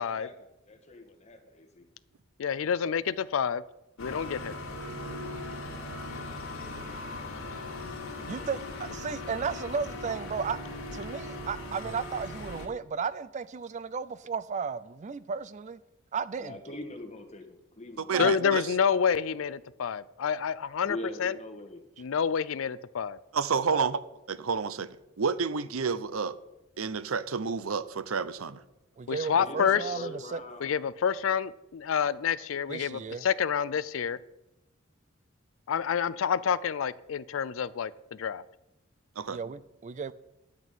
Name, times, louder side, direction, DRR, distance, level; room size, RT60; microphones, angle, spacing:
voice 1, 0.0-1.9 16.4-17.4 17.8-18.4 20.8-21.8 29.3-30.7, left 1 dB, 30° left, 1.7 m, -42 dB
voice 2, 2.4-3.6 4.0-4.6 18.2-21.4 22.0-23.2 29.1-29.9 30.6-34.2 35.7-38.4, left 7 dB, 70° left, 0.4 m, -28 dB
sound 1, 4.0-12.7, left 2 dB, 85° left, 2.2 m, -39 dB
voice 3, 8.3-10.6 10.9-15.8 16.1-16.6 18.1-18.6 23.7-23.9 29.0-30.4 32.7-33.2 39.3-40.1, right 5 dB, 35° right, 0.4 m, -34 dB
voice 4, 18.0-18.6 23.3-24.0 24.3-24.9 25.2-26.3 26.8-28.6 39.2-39.4, right 5 dB, 80° right, 0.7 m, -30 dB
10.5 x 6.2 x 9.0 m
head